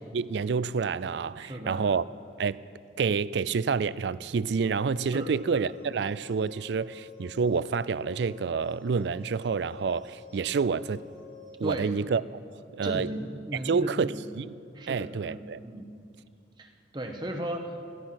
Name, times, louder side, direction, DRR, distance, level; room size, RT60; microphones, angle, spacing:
voice 1, 0.1-2.0 2.4-2.6 3.0-11.0 11.6-12.2 12.5-13.1 13.6-14.5 14.9-15.6, right 5 dB, 70° right, 0.4 m, -28 dB
voice 2, 1.4-1.8 5.1-5.6 11.6-11.9 12.8-14.2 14.7-15.4 15.6-15.9 16.6-17.8, right 1 dB, 25° right, 1.0 m, -36 dB
sound 1, 4.8-11.8, left 7 dB, 70° left, 2.6 m, -49 dB
17.0 x 14.5 x 5.9 m
head